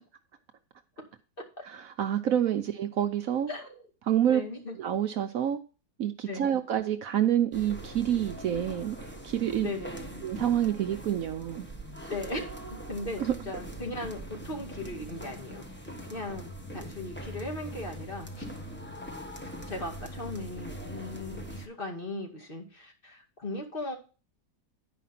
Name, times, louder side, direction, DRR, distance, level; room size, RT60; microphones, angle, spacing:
voice 1, 1.6-3.5 4.1-4.4 4.8-5.6 6.0-9.0 9.2-9.7 10.2-11.7 13.2-13.3, right 10 dB, 65° right, 1.0 m, -27 dB
voice 2, 3.5-3.8 4.3-4.8 6.3-6.5 9.6-10.3 12.1-12.5 12.9-18.5 19.7-24.0, left 2 dB, 35° left, 2.3 m, -38 dB
sound 1, 7.5-21.7, right 1 dB, 10° left, 1.0 m, -42 dB
10.0 x 5.1 x 5.7 m
omnidirectional pair, 1.7 m